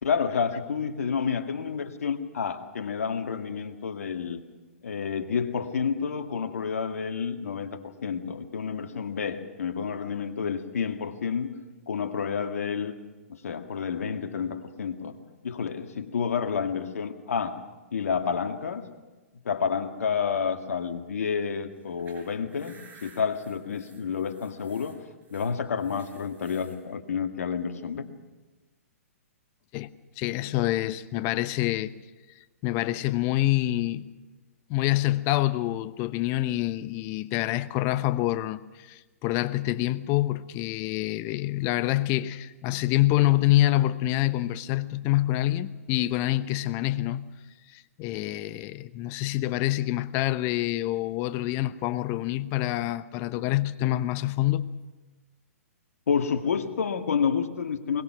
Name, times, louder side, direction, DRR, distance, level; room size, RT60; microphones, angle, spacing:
voice 1, 0.0-4.4 4.8-11.5 11.9-12.9 13.3-15.1 15.4-17.6 17.9-18.8 19.4-25.0 25.3-28.1 56.1-58.0, left 6 dB, 70° left, 1.9 m, -29 dB
sound 1, 21.8-26.8, right 4 dB, 20° right, 6.0 m, -55 dB
voice 2, 30.2-31.9 32.6-34.1 34.7-47.3 47.7-54.7, left 15 dB, 35° left, 0.8 m, -26 dB
22.0 x 20.5 x 6.1 m
hypercardioid pair, 125°, 8 cm